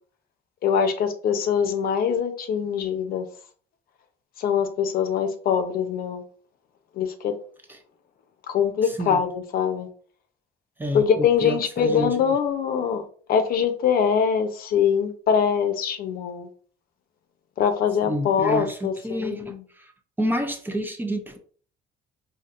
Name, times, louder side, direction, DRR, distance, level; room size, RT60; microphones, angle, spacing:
voice 1, 0.6-3.3 4.4-6.2 7.0-7.3 8.5-9.9 10.9-13.0 13.3-16.5 17.6-19.6, left 7 dB, 60° left, 0.6 m, -23 dB
voice 2, 8.8-9.2 10.8-12.4 18.0-19.9 20.2-21.4, equal, 10° right, 0.6 m, -29 dB
4.3 x 2.7 x 2.5 m
cardioid pair, 110°, 17 cm